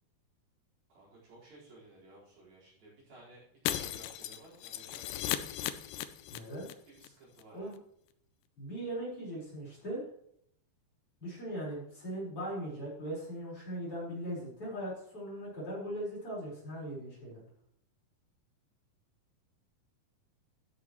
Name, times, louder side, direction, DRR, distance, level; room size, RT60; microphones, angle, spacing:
voice 1, 0.9-5.4 6.9-7.7, right 2 dB, 70° right, -6 dB, 6.2 m, -56 dB
Shatter, 3.7-6.7 7.0-7.1 7.4-7.5, left 12 dB, 80° left, 1.9 m, -36 dB
voice 2, 6.3-6.7 7.5-7.7 8.6-10.0 11.2-17.4, right 1 dB, 35° left, -6 dB, 5.4 m, -39 dB
13.5 x 9.1 x 3.1 m, 0.69 s
omnidirectional pair, 4.5 m